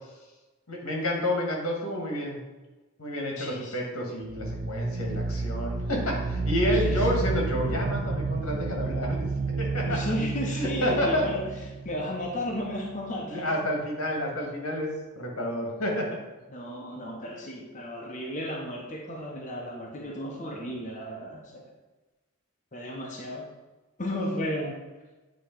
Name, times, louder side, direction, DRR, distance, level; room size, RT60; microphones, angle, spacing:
voice 1, 0.7-2.4 3.0-9.2 9.6-10.1 10.5-11.3 13.3-14.9 15.1-16.2, left 1 dB, 90° left, -1 dB, 1.7 m, -29 dB
voice 2, 3.4-3.7 6.7-7.3 9.9-11.4 11.8-13.5 16.5-21.7 22.7-23.5 24.0-24.8, left 1 dB, 35° left, -1 dB, 0.7 m, -34 dB
sound 1, 4.2-12.9, right 3 dB, 35° right, 0.3 m, -30 dB
8.4 x 3.0 x 4.5 m, 1.2 s
head